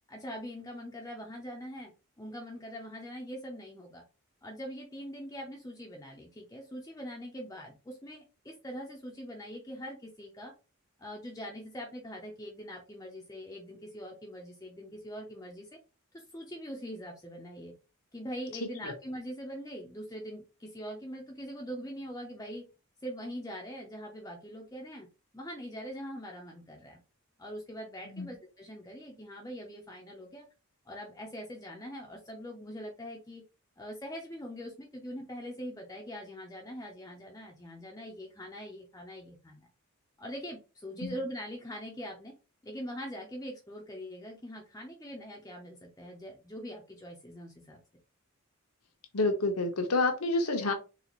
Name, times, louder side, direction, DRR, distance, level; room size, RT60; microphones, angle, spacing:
voice 1, 0.1-1.9 2.2-4.0 4.4-10.5 11.0-15.7 16.1-17.7 18.1-22.6 23.0-25.1 25.3-27.0 27.4-30.5 30.9-33.4 33.8-39.7 40.2-42.3 42.6-47.8, equal, 15° left, 0 dB, 0.6 m, -42 dB
voice 2, 49.1-50.7, left 2 dB, 85° left, 5 dB, 0.9 m, -28 dB
4.0 x 2.4 x 3.0 m, 0.31 s
head